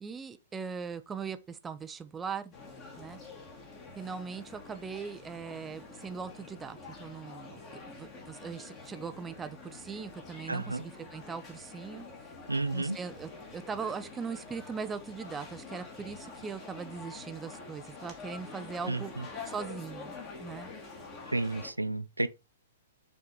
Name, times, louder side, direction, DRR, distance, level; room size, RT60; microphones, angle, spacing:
voice 1, 0.0-2.5 3.0-3.2 4.0-12.3 12.7-20.1 20.4-20.7, right 5 dB, 15° right, 0.6 m, -40 dB
sound 1, 2.5-21.7, left 4 dB, 30° left, 1.9 m, -47 dB
voice 2, 10.5-10.8 12.5-13.0 18.9-19.2 21.3-22.3, right 2 dB, 85° right, 0.4 m, -31 dB
6.6 x 3.5 x 4.3 m
figure-of-eight pair, 110°, 0 cm